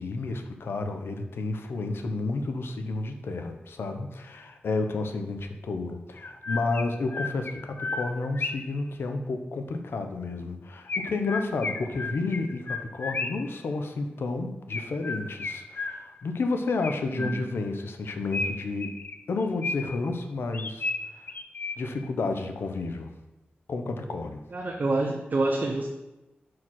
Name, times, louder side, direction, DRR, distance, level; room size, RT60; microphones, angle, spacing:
voice 1, 0.0-18.9 19.3-21.3 21.8-23.1 23.7-24.4, left 3 dB, 90° left, 6 dB, 0.8 m, -31 dB
Chirp tweet, 6.2-8.8 10.9-13.6 14.7-16.3 16.8-17.7 18.3-20.1 20.5-22.1, left 3 dB, 50° left, 0.5 m, -34 dB
voice 2, 24.5-25.9, right 2 dB, 50° right, 1 dB, 0.8 m, -27 dB
5.7 x 4.8 x 6.2 m, 0.99 s
wide cardioid pair, 90°, 4 cm